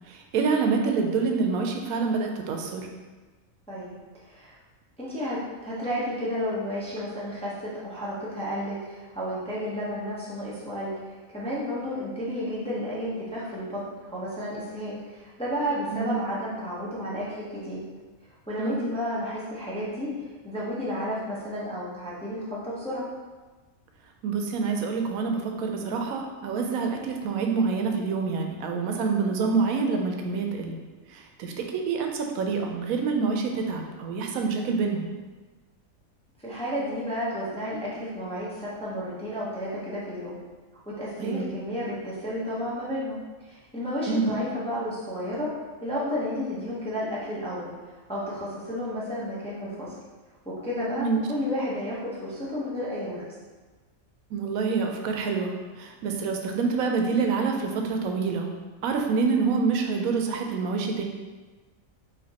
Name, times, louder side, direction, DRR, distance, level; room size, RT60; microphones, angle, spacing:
voice 1, 0.1-2.8 15.9-16.2 18.6-18.9 24.2-30.8 31.1-35.1 41.2-41.5 44.1-44.3 51.0-51.2 54.3-58.5 58.8-61.0, right 4 dB, 85° right, 3 dB, 1.0 m, -27 dB
voice 2, 4.2-4.5 5.0-10.9 11.3-13.8 14.1-17.8 18.5-23.1 36.4-40.4 40.9-43.2 43.4-45.5 45.8-47.7 48.1-50.0 50.5-53.3, equal, 5° left, -7 dB, 0.6 m, -32 dB
5.1 x 2.8 x 2.8 m, 1.3 s
omnidirectional pair, 1.4 m